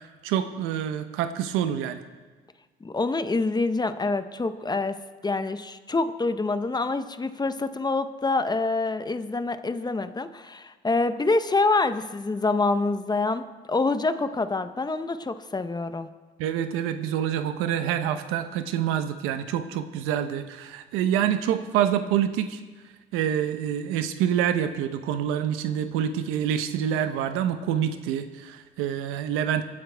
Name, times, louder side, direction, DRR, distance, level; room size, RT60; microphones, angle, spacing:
voice 1, 0.2-2.0 16.4-22.6 23.1-29.6, right 9 dB, 85° right, 10 dB, 0.9 m, -26 dB
voice 2, 2.8-5.0 5.2-16.1, left 3 dB, 20° left, 11 dB, 0.8 m, -26 dB
25.0 x 8.7 x 3.5 m, 1.4 s
supercardioid pair, 75°, 21 cm